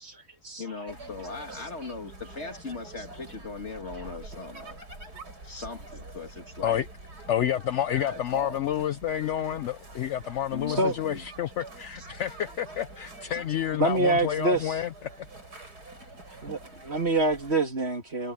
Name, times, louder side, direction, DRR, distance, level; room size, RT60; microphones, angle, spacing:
voice 1, 0.0-0.6 10.7-11.0 13.8-14.8 16.4-18.3, right 2 dB, 35° right, 2.9 m, -26 dB
voice 2, 0.6-4.8 5.4-6.8 7.9-8.7 10.5-11.2, left 3 dB, 40° left, 2.3 m, -39 dB
sound 1, 0.9-17.6, right 2 dB, 65° right, 7.2 m, -46 dB
voice 3, 7.3-15.1, left 10 dB, 75° left, 0.6 m, -29 dB
omnidirectional pair, 1.8 m